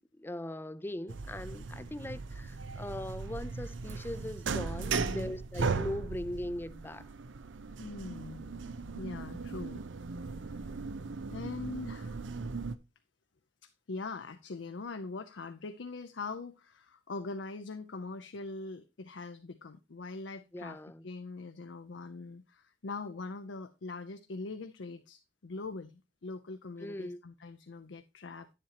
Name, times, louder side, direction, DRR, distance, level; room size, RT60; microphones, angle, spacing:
voice 1, 0.0-7.1 20.5-21.1 26.8-27.2, left 1 dB, 10° left, 0.4 m, -40 dB
sound 1, 1.1-12.8, right 4 dB, 85° right, 0.6 m, -38 dB
voice 2, 4.9-5.3 7.8-8.5 8.9-9.8 10.7-10.8 11.3-12.2 13.6-28.5, left 3 dB, 75° left, 0.6 m, -42 dB
9.8 x 7.5 x 2.8 m
head